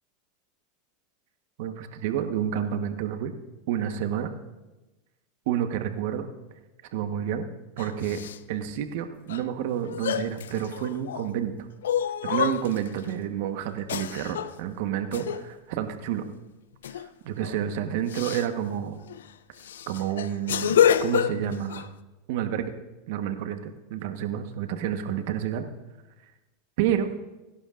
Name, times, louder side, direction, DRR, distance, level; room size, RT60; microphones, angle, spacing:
voice 1, 1.6-3.3 3.7-4.3 5.5-6.3 6.9-7.5 7.8-8.2 8.5-11.7 12.2-16.2 16.9-19.0 19.9-21.9 22.3-22.7 23.1-25.6 26.8-27.1, right 10 dB, 65° right, 7 dB, 1.3 m, -29 dB
sound 1, 7.8-8.4 9.3-9.4 9.8-11.3 11.8-13.0 13.9-14.6 15.1-15.5 16.8-17.1 17.4-17.6 18.1-18.5 19.1-19.2 19.6-21.9, left 9 dB, 85° left, 0.5 m, -27 dB
25.5 x 11.5 x 2.6 m, 1.1 s
hypercardioid pair, 105°, 0 cm